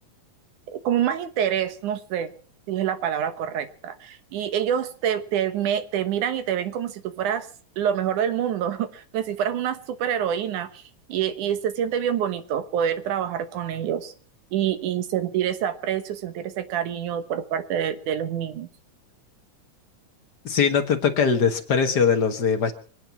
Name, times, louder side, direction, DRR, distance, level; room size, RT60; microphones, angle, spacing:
voice 1, 0.7-2.3 2.7-7.5 7.8-10.8 11.1-14.1 14.5-18.7, right 9 dB, 80° right, 10 dB, 2.7 m, -26 dB
voice 2, 20.4-22.7, left 6 dB, 45° left, 6 dB, 1.4 m, -21 dB
24.5 x 8.9 x 5.9 m, 0.42 s
omnidirectional pair, 3.5 m